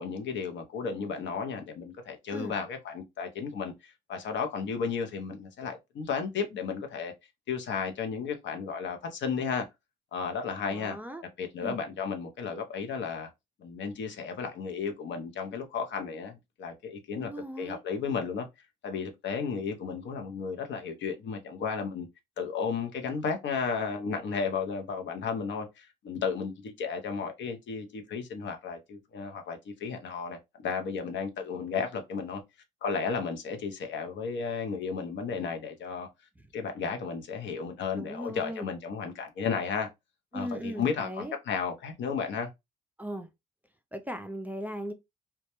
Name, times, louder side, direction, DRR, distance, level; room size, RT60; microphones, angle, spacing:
voice 1, 0.0-7.1 7.5-9.7 10.1-11.0 11.4-13.3 13.6-17.3 17.6-18.5 18.8-22.1 22.4-32.4 32.8-36.1 36.5-39.9 40.3-42.5, left 5 dB, 65° left, 0.6 m, -33 dB
voice 2, 10.6-11.2 11.6-11.8 17.2-17.8 38.0-38.7 40.3-41.3 43.0-43.3 43.9-44.9, equal, 10° right, 0.3 m, -38 dB
2.2 x 2.1 x 2.8 m
cardioid pair, 90°, 20 cm